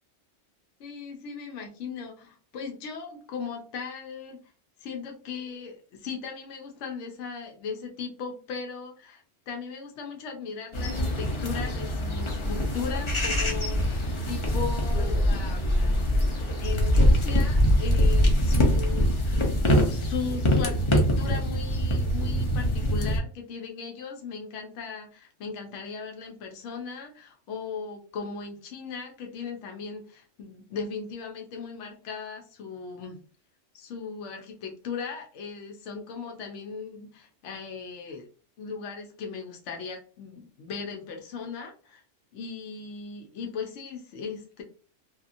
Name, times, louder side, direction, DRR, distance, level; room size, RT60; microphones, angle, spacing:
voice 1, 0.8-4.4 4.8-16.1 16.6-33.2 33.7-38.3 38.6-42.0 42.3-44.6, left 5 dB, 75° left, 2 dB, 0.9 m, -38 dB
sound 1, 10.7-23.2, equal, 35° left, 0.5 m, -24 dB
2.9 x 2.4 x 2.5 m, 0.40 s
omnidirectional pair, 1.3 m